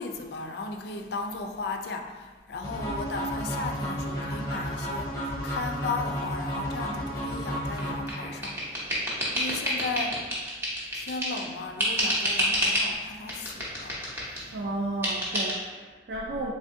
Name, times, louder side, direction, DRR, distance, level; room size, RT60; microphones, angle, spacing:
voice 1, 0.0-8.9 9.3-10.2 10.9-14.0 14.4-14.6, left 3 dB, 60° left, 4 dB, 0.3 m, -36 dB
sound 1, 2.6-8.6, equal, 20° left, 0.8 m, -32 dB
sound 2, 7.8-11.5 11.8-12.9 13.3-14.5 15.0-15.5, equal, 10° right, 0.7 m, -28 dB
voice 2, 14.5-16.5, right 2 dB, 60° right, -3 dB, 0.4 m, -33 dB
3.5 x 3.3 x 2.6 m, 1.4 s
head